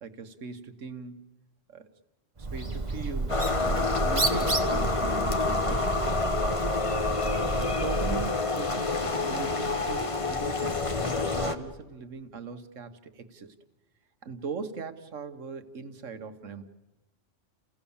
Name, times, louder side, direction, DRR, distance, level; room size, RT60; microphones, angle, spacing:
voice 1, 0.0-1.3 1.7-1.9 2.4-6.0 6.4-6.6 7.6-10.8 11.2-13.5 14.2-16.6, right 5 dB, 80° right, 9 dB, 1.6 m, -40 dB
Bird, 2.4-8.4, right 3 dB, 25° right, 1.5 m, -31 dB
sound 1, 3.3-11.6, left 3 dB, 30° left, 1.1 m, -28 dB
29.5 x 17.0 x 7.1 m, 1.1 s
omnidirectional pair, 1.3 m